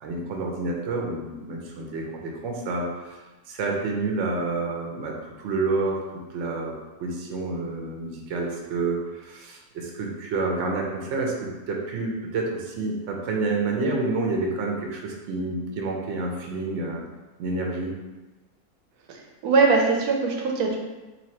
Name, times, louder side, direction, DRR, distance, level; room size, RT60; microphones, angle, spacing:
voice 1, 0.0-3.2 3.5-6.7 7.0-17.0 17.4-17.9, right 3 dB, 60° right, 0 dB, 0.8 m, -29 dB
voice 2, 19.1-20.8, right 4 dB, 80° right, 1 dB, 1.1 m, -21 dB
2.8 x 2.5 x 4.2 m, 1.1 s
omnidirectional pair, 1.6 m